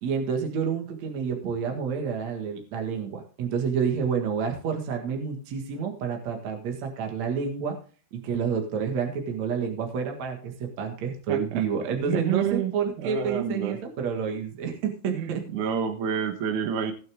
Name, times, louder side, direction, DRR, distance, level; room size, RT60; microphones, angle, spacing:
voice 1, 0.0-7.8 8.1-15.4, right 6 dB, 55° right, 3 dB, 2.2 m, -29 dB
voice 2, 11.3-11.6 12.1-12.7 13.0-13.8 15.1-16.9, right 8 dB, 70° right, 7 dB, 1.9 m, -29 dB
18.5 x 6.7 x 3.6 m, 0.39 s
omnidirectional pair, 5.4 m